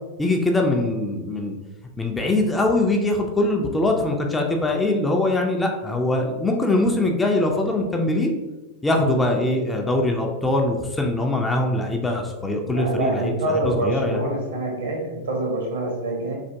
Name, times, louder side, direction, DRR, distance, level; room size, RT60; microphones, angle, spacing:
voice 1, 0.2-1.6 2.0-8.3 8.8-14.2, left 2 dB, 10° left, 2 dB, 0.3 m, -22 dB
voice 2, 12.6-16.4, right 2 dB, 65° right, 0 dB, 0.8 m, -26 dB
3.3 x 2.5 x 2.5 m, 1.1 s
figure-of-eight pair, 90°, 0 cm